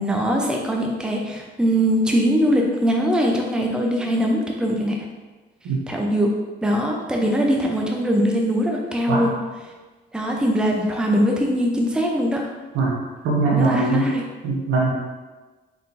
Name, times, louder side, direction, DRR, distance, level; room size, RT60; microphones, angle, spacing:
voice 1, 0.0-5.0 5.9-6.3 6.6-9.3 10.1-12.4 13.5-14.2, equal, 5° right, 0 dB, 0.5 m, -21 dB
voice 2, 13.2-14.1 14.4-14.9, right 3 dB, 85° right, -3 dB, 1.1 m, -20 dB
4.0 x 3.7 x 2.6 m, 1.3 s
cardioid pair, 90°, 20 cm